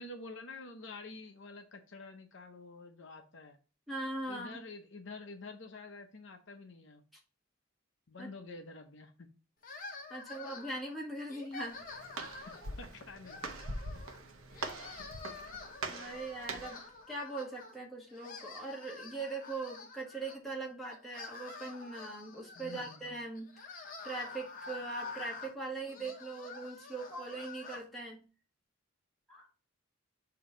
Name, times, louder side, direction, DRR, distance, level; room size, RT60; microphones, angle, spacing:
voice 1, 0.0-3.6 4.3-7.0 8.1-9.3 12.5-13.4 22.6-23.1, left 3 dB, 60° left, 6 dB, 0.7 m, -48 dB
voice 2, 3.9-4.6 8.2-8.3 10.1-11.8 15.9-23.5 24.0-28.2 29.3-29.5, right 2 dB, ahead, -4 dB, 1.6 m, -41 dB
sound 1, 9.6-10.9 11.3-12.8 13.2-14.2 14.5-17.8 18.1-20.4 20.9-27.8, left 4 dB, 40° left, 1.1 m, -48 dB
Walk footsteps, 11.5-16.9, right 3 dB, 80° right, 0.8 m, -43 dB
6.8 x 2.8 x 5.0 m, 0.34 s
head